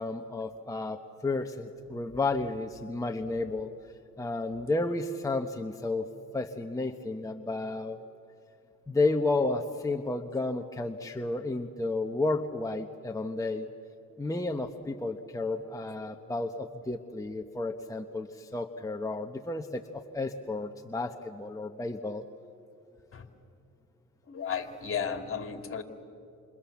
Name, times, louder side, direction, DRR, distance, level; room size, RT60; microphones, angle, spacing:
voice 1, 0.0-3.7 4.2-8.0 8.9-13.7 14.2-22.3, left 2 dB, 10° left, 3 dB, 1.2 m, -32 dB
voice 2, 24.3-25.8, left 7 dB, 45° left, 6 dB, 2.8 m, -34 dB
28.0 x 28.0 x 7.3 m, 2.6 s
cardioid pair, 90°, 30 cm